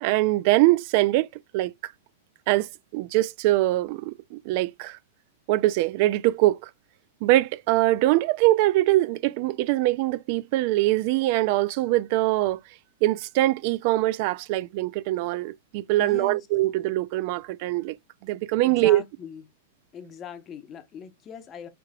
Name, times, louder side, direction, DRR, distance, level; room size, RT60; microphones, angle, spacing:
voice 1, 0.0-1.3 1.5-1.7 2.5-5.0 5.5-6.7 7.2-12.6 13.0-18.0 18.2-19.0, right 17 dB, 50° right, 0.3 m, -23 dB
voice 2, 16.0-16.5 18.6-19.4 19.9-21.7, left 8 dB, 25° left, 0.8 m, -40 dB
4.9 x 3.2 x 2.4 m
supercardioid pair, 145°, 0 cm